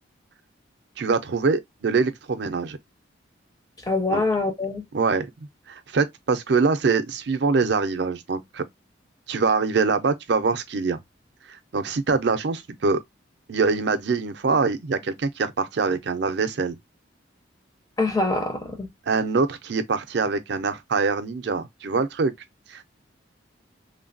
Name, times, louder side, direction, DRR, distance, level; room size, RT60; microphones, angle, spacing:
voice 1, 1.0-2.8 4.1-4.2 4.9-5.3 5.7-8.6 9.3-11.0 11.5-13.0 13.5-16.8 19.1-22.3 22.7-22.9, right 4 dB, 60° right, 0.5 m, -24 dB
voice 2, 3.9-4.8 18.0-18.9, left 2 dB, 20° left, 0.5 m, -24 dB
3.2 x 2.2 x 2.5 m
head